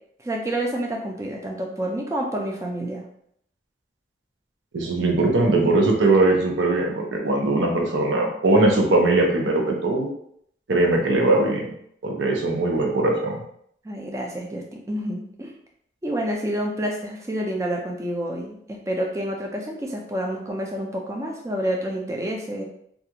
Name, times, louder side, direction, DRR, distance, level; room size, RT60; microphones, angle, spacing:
voice 1, 0.2-3.0 13.8-15.5 16.0-22.6, right 1 dB, 15° right, 0 dB, 0.4 m, -28 dB
voice 2, 4.7-10.1 10.7-11.6 12.0-13.4, right 2 dB, 90° right, 0 dB, 0.6 m, -20 dB
2.4 x 2.3 x 2.8 m, 0.68 s
head